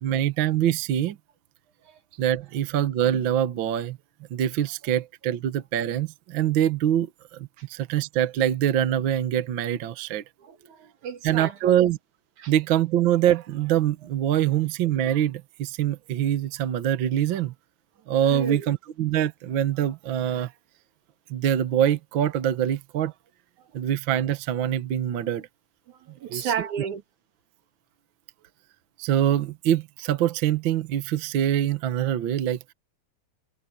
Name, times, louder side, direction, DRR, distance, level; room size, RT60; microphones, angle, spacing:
voice 1, 0.0-1.2 2.2-4.0 4.3-10.2 11.2-12.0 12.5-17.5 18.1-20.5 21.3-23.1 23.7-25.5 26.3-26.5 29.0-32.6, right 11 dB, 55° right, 1.4 m, -24 dB
voice 2, 10.4-11.8 12.4-12.5 18.3-18.7 23.6-23.8 25.9-27.0, right 7 dB, 85° right, 3.5 m, -33 dB
omnidirectional pair, 3.3 m